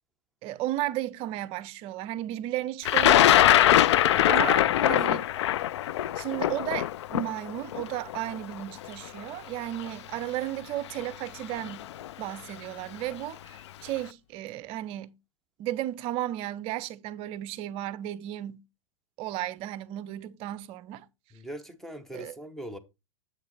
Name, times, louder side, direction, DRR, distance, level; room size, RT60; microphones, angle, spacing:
voice 1, 0.4-3.7 4.3-5.2 6.2-11.9 12.2-15.2 15.6-18.6 19.2-21.1 22.1-22.3, right 14 dB, 35° right, 0.6 m, -34 dB
Thunder, 2.9-8.9 9.8-9.9 11.0-11.3 11.6-12.1, left 12 dB, 60° left, 0.4 m, -22 dB
voice 2, 4.0-5.2 21.3-22.8, equal, ahead, 1.0 m, -42 dB
7.9 x 5.8 x 4.0 m
figure-of-eight pair, 105°, 16 cm